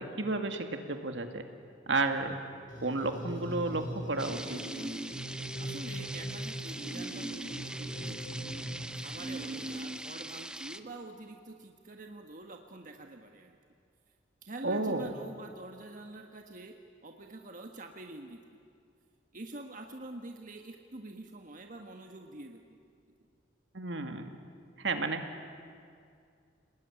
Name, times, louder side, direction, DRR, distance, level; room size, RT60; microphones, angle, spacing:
voice 1, 0.0-1.5 1.9-2.4 2.8-4.6 14.6-15.1 23.7-24.3 24.8-25.2, right 3 dB, 70° right, 6 dB, 2.2 m, -32 dB
sound 1, 2.7-10.2, right 1 dB, 45° left, 4.9 m, -40 dB
sound 2, 4.2-10.8, right 1 dB, 5° right, 0.8 m, -43 dB
voice 2, 5.6-8.6 8.9-13.6 14.4-16.7 17.0-18.4 19.3-22.8, right 2 dB, 45° right, 3 dB, 1.5 m, -46 dB
29.0 x 20.0 x 9.9 m, 2.3 s
head